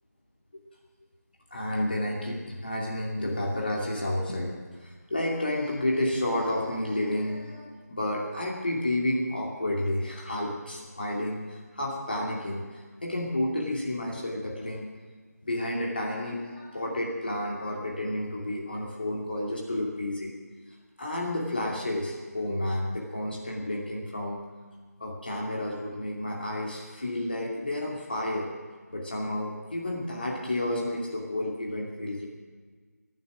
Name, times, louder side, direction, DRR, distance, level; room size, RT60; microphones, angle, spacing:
voice 1, 1.5-4.5 4.8-14.9 15.4-20.3 21.0-24.4 25.0-28.5 28.9-32.3, left 1 dB, 35° left, -2 dB, 2.5 m, -31 dB
24.5 x 9.2 x 6.2 m, 1.5 s
figure-of-eight pair, 175°, 9 cm